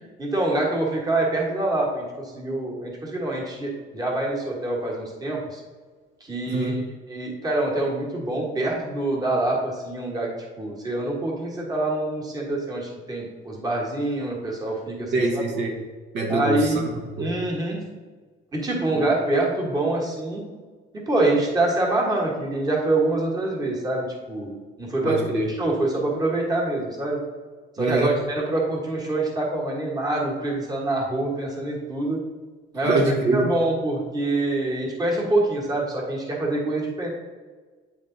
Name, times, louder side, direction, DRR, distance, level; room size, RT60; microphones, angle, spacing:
voice 1, 0.2-5.6 6.2-6.8 7.1-10.3 10.6-15.4 16.3-16.9 17.2-17.8 18.5-20.4 21.1-24.5 24.8-25.2 25.5-27.2 27.8-32.2 32.7-33.0 33.3-37.1, right 2 dB, 20° right, -2 dB, 1.4 m, -25 dB
voice 2, 6.5-6.8 15.1-15.8 16.1-17.4 25.0-25.5 27.8-28.1 32.8-33.5, right 2 dB, 65° right, 1 dB, 1.1 m, -24 dB
9.2 x 3.5 x 3.8 m, 1.4 s
cardioid pair, 160°, 20 cm